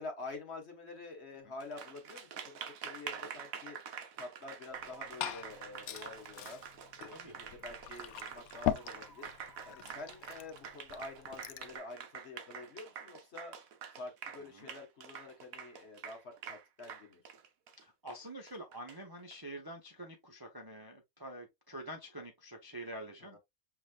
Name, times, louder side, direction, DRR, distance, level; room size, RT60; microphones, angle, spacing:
voice 1, 0.0-6.6 7.0-9.3 9.6-13.5 13.9-17.2 23.3-23.4, left 3 dB, 50° left, 1.5 m, -48 dB
Applause, 1.6-19.4, right 7 dB, 75° right, 1.2 m, -47 dB
Glass / Fill (with liquid), 4.7-11.8, left 11 dB, 80° left, 1.0 m, -41 dB
sound 1, 4.8-5.4 8.6-11.4, equal, 55° right, 2.6 m, -62 dB
voice 2, 17.8-23.4, right 1 dB, 25° right, 0.6 m, -47 dB
5.9 x 3.2 x 2.3 m
omnidirectional pair, 1.5 m